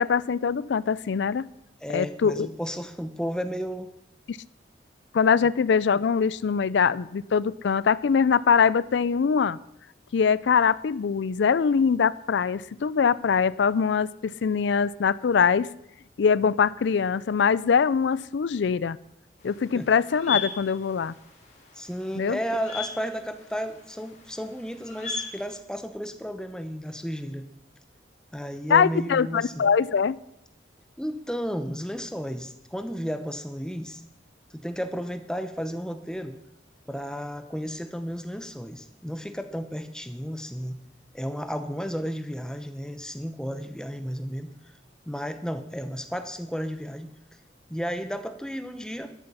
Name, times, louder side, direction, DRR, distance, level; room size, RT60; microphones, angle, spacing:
voice 1, 0.0-1.5 1.9-2.5 4.3-4.4 5.1-9.6 10.1-15.7 16.2-19.0 19.4-21.1 22.2-22.4 28.7-30.2, left 6 dB, 75° left, 20 dB, 0.4 m, -23 dB
voice 2, 1.8-3.9 5.4-5.5 19.7-19.9 21.7-27.5 28.3-29.7 31.0-34.0 34.5-36.4 36.9-40.8 41.1-44.5 45.1-47.1 47.7-49.1, equal, 5° left, 9 dB, 0.8 m, -33 dB
sound 1, 19.4-25.5, left 6 dB, 40° left, 3.8 m, -38 dB
13.0 x 11.0 x 5.6 m, 0.82 s
head